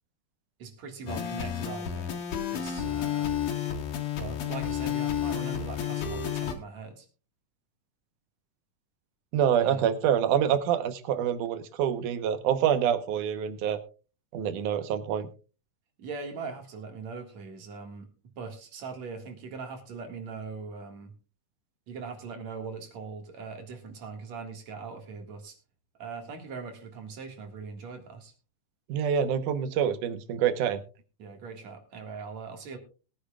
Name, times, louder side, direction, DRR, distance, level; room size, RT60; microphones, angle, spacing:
voice 1, 0.6-2.2 2.5-3.3 4.2-7.1 9.6-9.9 16.0-18.1 18.4-21.1 21.9-25.6 26.0-28.3 31.2-32.8, right 5 dB, 60° right, 4 dB, 2.9 m, -41 dB
sound 1, 1.1-6.5, left 9 dB, 75° left, 3.3 m, -31 dB
voice 2, 9.3-13.8 14.3-15.3 28.9-30.8, right 9 dB, 80° right, 10 dB, 2.5 m, -26 dB
21.5 x 10.0 x 2.3 m, 0.33 s
omnidirectional pair, 3.7 m